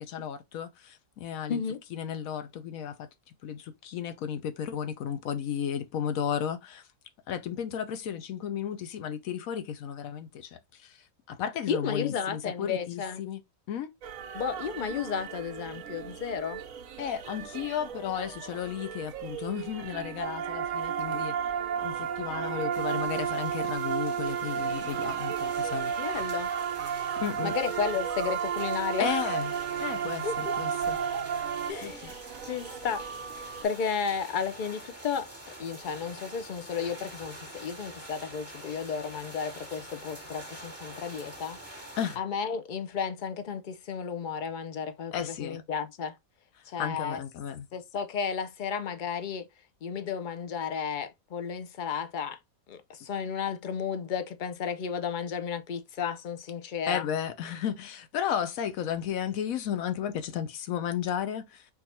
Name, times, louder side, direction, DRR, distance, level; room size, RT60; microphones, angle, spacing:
voice 1, 0.0-1.6 1.9-3.1 3.4-6.9 7.3-13.4 13.7-13.9 17.0-21.3 21.8-26.2 27.2-27.5 29.0-29.5 29.8-31.0 31.8-32.1 42.0-42.2 45.1-45.6 46.8-47.7 56.9-61.7, left 9 dB, 75° left, 1.1 m, -34 dB
voice 2, 1.5-1.8 11.7-13.2 14.3-16.6 26.0-26.5 27.4-29.3 30.2-30.9 31.7-32.2 32.4-33.0 33.3-41.6 42.2-46.2 46.7-47.2 47.7-49.5 49.8-52.4 52.7-57.1, left 6 dB, 60° left, 0.5 m, -33 dB
sound 1, 14.0-33.7, right 7 dB, 70° right, 1.1 m, -42 dB
sound 2, 20.2-31.7, right 8 dB, 50° right, 0.6 m, -31 dB
sound 3, 22.7-42.2, right 1 dB, 10° right, 1.7 m, -46 dB
4.6 x 2.6 x 4.1 m
omnidirectional pair, 1.5 m